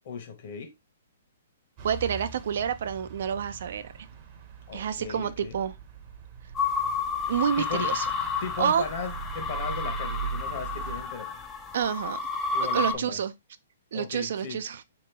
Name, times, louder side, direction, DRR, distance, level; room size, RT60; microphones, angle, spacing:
voice 1, 0.0-0.7 4.7-5.5 7.6-7.9 8.4-11.4 12.5-13.2 13.9-14.6, left 5 dB, 45° left, 1.1 m, -37 dB
sound 1, 1.8-11.0, right 7 dB, 25° right, 0.7 m, -41 dB
voice 2, 1.8-3.9 4.7-5.7 7.3-8.0 8.6-8.8 11.7-12.2 12.7-13.3 13.9-14.8, right 8 dB, 55° right, 0.4 m, -28 dB
sound 2, 6.6-13.0, left 4 dB, 10° left, 0.4 m, -31 dB
3.7 x 3.0 x 3.4 m
hypercardioid pair, 165°, 0 cm